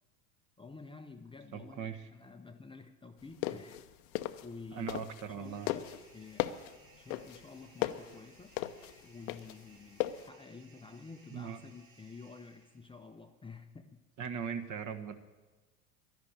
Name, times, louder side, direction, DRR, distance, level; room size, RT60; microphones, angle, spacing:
voice 1, 0.6-3.9 4.4-5.0 5.3-5.8 6.1-6.5 7.0-8.6 9.0-14.0, left 4 dB, 10° left, 6 dB, 0.7 m, -50 dB
voice 2, 1.5-2.0 4.7-5.7 11.3-11.6 14.2-15.1, right 6 dB, 40° right, 8 dB, 1.6 m, -39 dB
sound 1, 3.2-5.4 5.7-10.3, left 15 dB, 65° left, 0.9 m, -36 dB
sound 2, 5.4-13.1, right 3 dB, 55° right, 4.7 m, -63 dB
11.5 x 11.0 x 8.9 m, 1.2 s
hypercardioid pair, 80°, 46 cm